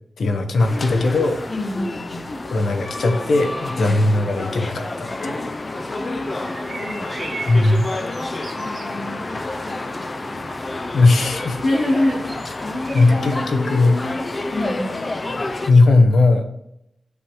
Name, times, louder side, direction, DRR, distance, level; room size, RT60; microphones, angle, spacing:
voice 1, 0.2-1.4 2.4-5.1 7.5-7.9 10.9-11.6 12.9-14.0 15.7-16.4, left 3 dB, 70° left, 6 dB, 1.0 m, -17 dB
sound 1, 0.6-15.7, left 2 dB, 25° left, 0.5 m, -29 dB
voice 2, 1.5-2.2 3.8-4.1 5.2-7.1 8.5-10.5 11.6-15.0, left 1 dB, 50° left, -7 dB, 3.0 m, -28 dB
sound 2, 6.4-9.0 11.4-13.4, right 4 dB, 45° right, 0.6 m, -38 dB
8.1 x 7.1 x 3.1 m, 0.79 s
wide cardioid pair, 155°, 0 cm